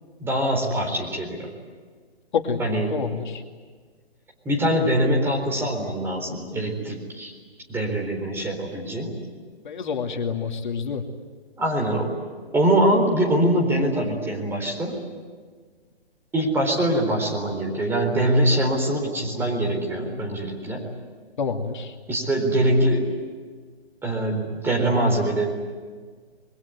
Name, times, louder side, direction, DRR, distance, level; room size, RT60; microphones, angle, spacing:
voice 1, 0.2-1.5 2.6-2.9 4.4-7.3 7.7-9.1 11.6-12.1 12.5-15.0 16.3-20.9 22.1-23.1 24.0-25.5, right 1 dB, 5° right, 1 dB, 4.1 m, -23 dB
voice 2, 2.9-3.4 9.6-11.0 21.4-21.9, left 6 dB, 50° left, 4 dB, 2.6 m, -27 dB
27.0 x 22.0 x 9.5 m, 1.5 s
figure-of-eight pair, 135°, 32 cm